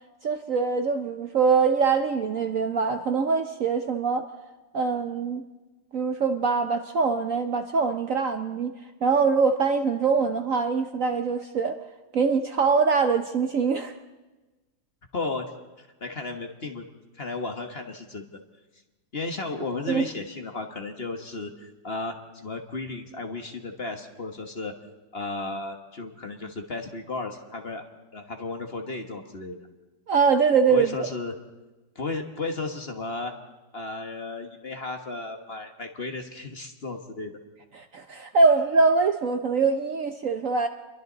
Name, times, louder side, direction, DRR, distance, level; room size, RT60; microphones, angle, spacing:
voice 1, 0.2-4.3 4.7-5.4 5.9-8.7 9.0-11.7 12.1-13.9 19.9-20.1 30.1-31.0 37.8-40.7, right 5 dB, 55° right, 7 dB, 1.0 m, -23 dB
voice 2, 15.1-15.5 15.8-16.9 17.1-18.3 19.1-24.7 25.1-27.9 28.1-29.6 30.7-31.3 31.9-33.3 33.7-37.3, left 3 dB, 35° left, 4 dB, 1.5 m, -34 dB
28.5 x 22.5 x 4.0 m, 1.2 s
omnidirectional pair, 2.0 m